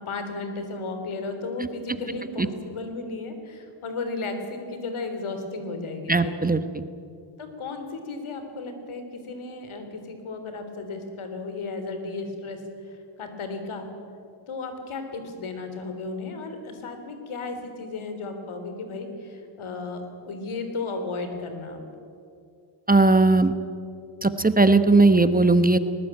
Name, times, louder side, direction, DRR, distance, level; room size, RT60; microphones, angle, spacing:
voice 1, 0.0-6.4 7.4-12.6 12.9-13.9 14.5-21.8, left 3 dB, 80° left, 7 dB, 3.6 m, -34 dB
voice 2, 6.1-6.6 22.9-23.5 24.2-25.8, right 3 dB, 20° right, 11 dB, 1.1 m, -18 dB
19.5 x 19.5 x 8.9 m, 2.5 s
cardioid pair, 75°, 49 cm